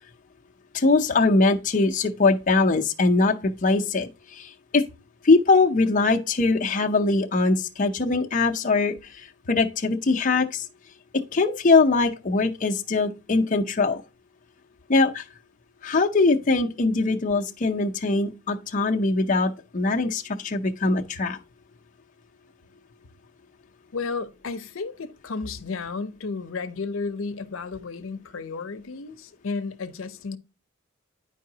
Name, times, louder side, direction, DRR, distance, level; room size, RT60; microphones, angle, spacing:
voice 1, 0.7-4.8 5.2-10.7 11.1-14.0 14.9-15.2 15.8-21.4, left 3 dB, 40° left, 0.6 m, -22 dB
voice 2, 23.9-30.4, left 4 dB, 85° left, 0.7 m, -33 dB
10.0 x 4.7 x 2.7 m
head